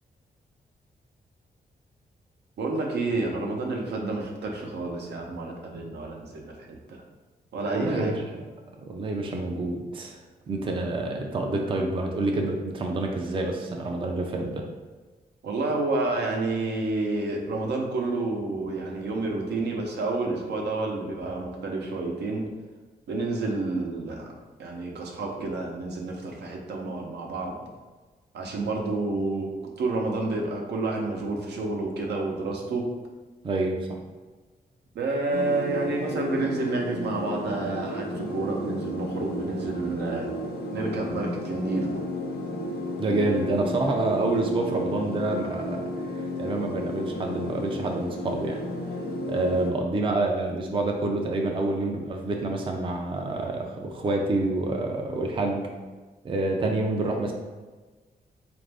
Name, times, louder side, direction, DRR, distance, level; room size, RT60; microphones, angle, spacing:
voice 1, 2.6-7.0 7.5-8.1 15.4-22.5 23.1-24.3 24.6-27.6 28.3-29.5 29.8-32.9 34.9-40.3 40.7-41.9, right 2 dB, 80° right, 0 dB, 0.7 m, -29 dB
voice 2, 7.7-8.4 8.8-10.2 10.5-14.7 33.4-34.0 43.0-48.6 49.3-55.7 56.2-57.3, right 2 dB, 30° right, 1 dB, 0.4 m, -27 dB
sound 1, 35.3-49.7, left 1 dB, 60° left, 0.6 m, -33 dB
4.0 x 2.5 x 3.4 m, 1.3 s
wide cardioid pair, 140°, 17 cm